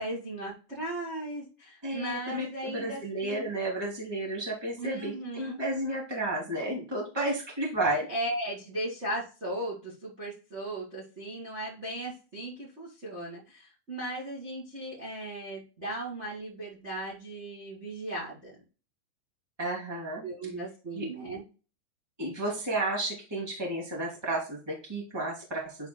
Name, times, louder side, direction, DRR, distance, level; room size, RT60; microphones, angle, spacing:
voice 1, 0.0-3.5 4.8-5.6 8.1-18.5 20.2-21.5, right 1 dB, 60° right, -3 dB, 0.7 m, -37 dB
voice 2, 1.8-8.1 19.6-20.2 20.9-21.1 22.2-25.9, right 1 dB, 5° right, -3 dB, 2.1 m, -32 dB
10.5 x 5.1 x 2.3 m, 0.34 s
omnidirectional pair, 5.3 m